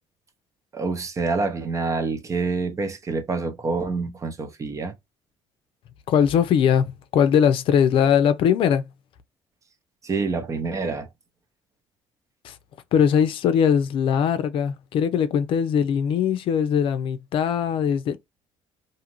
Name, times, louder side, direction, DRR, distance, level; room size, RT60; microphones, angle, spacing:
voice 1, 0.7-4.9 10.0-11.1, right 4 dB, 30° right, 0.7 m, -27 dB
voice 2, 6.1-8.9 12.4-12.5 12.9-18.2, left 8 dB, 60° left, 0.5 m, -20 dB
2.7 x 2.5 x 2.9 m
cardioid pair, 100°, 10 cm